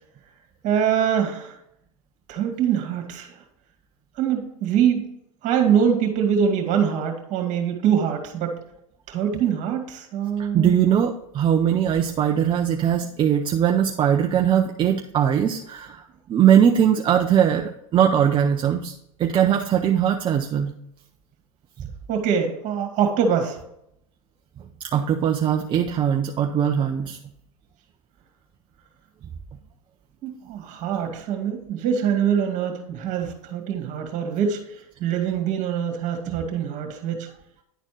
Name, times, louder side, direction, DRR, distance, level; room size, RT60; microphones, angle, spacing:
voice 1, 0.6-1.6 2.3-3.4 4.2-5.2 5.4-8.6 9.1-10.7 22.1-23.6 30.2-37.3, right 8 dB, 40° right, 4 dB, 2.1 m, -24 dB
voice 2, 10.5-16.0 16.3-18.9 19.2-20.7 21.8-21.9 24.8-27.2 36.3-36.4, right 9 dB, 25° right, 3 dB, 0.6 m, -20 dB
10.0 x 4.2 x 5.0 m, 0.77 s
hypercardioid pair, 110°, 19 cm